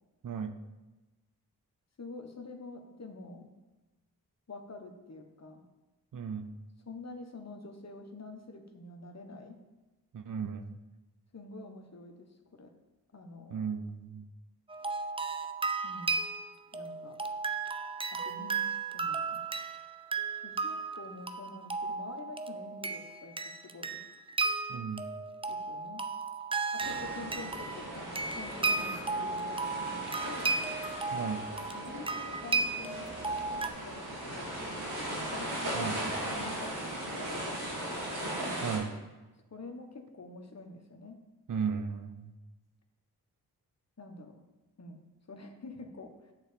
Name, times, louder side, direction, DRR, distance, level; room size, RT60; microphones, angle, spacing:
voice 1, 2.0-3.5 4.5-5.6 6.8-9.6 11.3-12.3 12.5-12.7 13.1-13.7 15.8-16.2 16.7-17.2 18.1-19.4 20.4-24.0 25.5-26.0 26.7-30.6 31.7-37.7 39.5-41.2 44.0-44.4 44.8-45.0 45.3-46.3, left 3 dB, 40° left, 4 dB, 1.3 m, -47 dB
voice 2, 6.1-6.5 10.1-10.8 13.5-14.3 24.7-25.1 31.1-31.5 35.7-36.1 38.6-38.9 41.5-42.3, right 6 dB, 55° right, 10 dB, 0.7 m, -35 dB
sound 1, 14.7-33.7, right 4 dB, 15° right, 0.6 m, -35 dB
sound 2, 26.8-38.8, right 1 dB, 85° right, 3.3 m, -38 dB
8.9 x 3.9 x 6.9 m, 1.1 s
cardioid pair, 45°, 38 cm